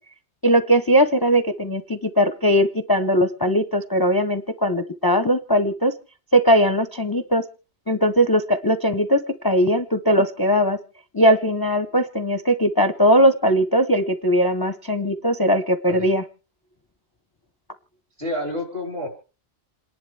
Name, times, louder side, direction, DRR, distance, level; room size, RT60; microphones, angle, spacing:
voice 1, 0.4-5.9 6.3-7.4 7.9-10.8 11.1-16.2, equal, 25° left, 10 dB, 0.5 m, -19 dB
voice 2, 18.2-19.1, left 1 dB, 60° right, 3 dB, 4.4 m, -29 dB
28.0 x 11.0 x 3.3 m, 0.35 s
omnidirectional pair, 1.2 m